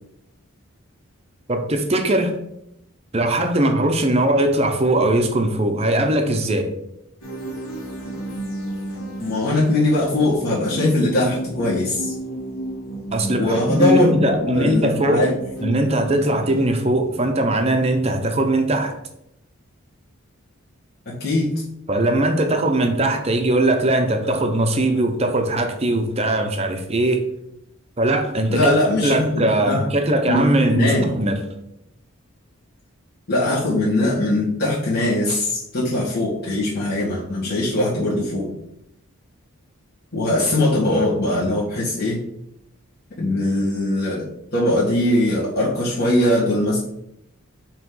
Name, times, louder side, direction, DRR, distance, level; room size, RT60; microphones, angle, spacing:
voice 1, 1.5-2.3 3.1-6.7 13.1-15.3 15.6-18.9 21.9-27.2 28.0-28.7 29.0-31.4, right 1 dB, 25° right, 5 dB, 0.6 m, -20 dB
sound 1, 7.2-16.7, right 1 dB, 70° left, 1.8 m, -32 dB
voice 2, 9.2-12.1 13.4-15.3 21.1-21.5 28.5-29.9 30.3-31.1 33.3-38.5 40.1-42.2 43.2-44.3 44.5-46.8, left 1 dB, 45° left, -9 dB, 1.9 m, -21 dB
5.9 x 3.1 x 5.4 m, 0.80 s
head